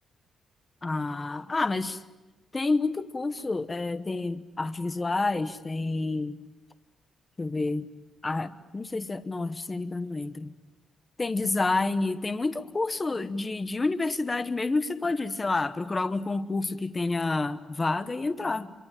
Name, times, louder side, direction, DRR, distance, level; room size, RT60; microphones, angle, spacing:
voice 1, 0.8-2.0 2.5-6.4 7.4-7.9 8.2-10.5 11.2-18.7, left 3 dB, 20° left, 11 dB, 1.0 m, -29 dB
27.5 x 24.0 x 9.0 m, 1.1 s
cardioid pair, 160°, 0 cm